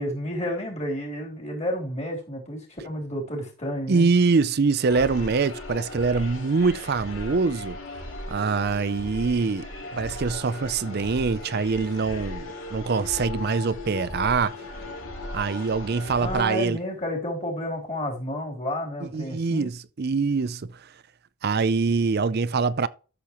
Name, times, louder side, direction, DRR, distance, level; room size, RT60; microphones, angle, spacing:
voice 1, 0.0-4.1 16.2-19.7, equal, 30° left, 3.4 m, -31 dB
voice 2, 3.9-7.8 8.3-9.7 9.9-14.6 15.3-16.8 19.1-20.9 21.4-22.9, right 4 dB, 45° right, 0.4 m, -24 dB
sound 1, 4.9-16.4, left 2 dB, 65° left, 3.0 m, -37 dB
13.0 x 7.0 x 3.0 m
head